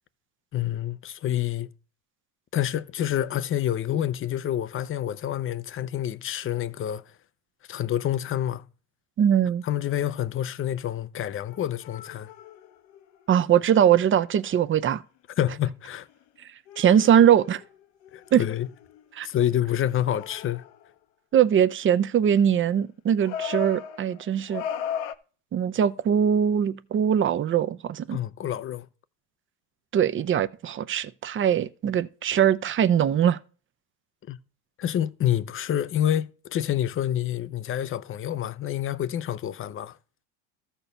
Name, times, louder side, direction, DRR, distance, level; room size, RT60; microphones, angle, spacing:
voice 1, 0.5-1.7 2.5-7.0 7.7-8.6 9.6-12.3 15.4-16.1 18.1-18.7 19.2-20.6 28.1-28.9 34.3-34.4 34.8-40.0, left 11 dB, 30° left, 0.6 m, -28 dB
voice 2, 9.2-9.6 13.3-15.0 16.8-17.6 18.3-18.4 19.1-19.3 21.3-24.6 25.5-28.2 29.9-33.4, right 9 dB, 25° right, 0.7 m, -21 dB
sound 1, 9.9-10.1 11.5-14.0 14.3-14.4 16.1-16.2 16.7-19.3 19.8-20.9 23.2-25.1, left 8 dB, 65° left, 1.1 m, -37 dB
13.0 x 4.5 x 6.8 m
supercardioid pair, 105°, 46 cm